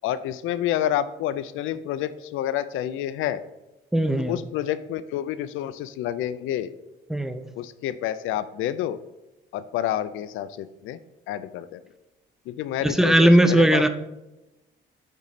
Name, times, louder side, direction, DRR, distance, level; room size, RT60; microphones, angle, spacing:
voice 1, 0.0-3.4 4.2-6.7 7.6-9.0 9.5-11.0 11.3-11.8 12.5-13.9, left 11 dB, 85° left, 14 dB, 0.4 m, -29 dB
voice 2, 3.9-4.4 7.1-7.4 12.8-13.9, right 1 dB, ahead, 9 dB, 0.5 m, -18 dB
8.7 x 3.1 x 4.1 m, 0.98 s
cardioid pair, 90°, 20 cm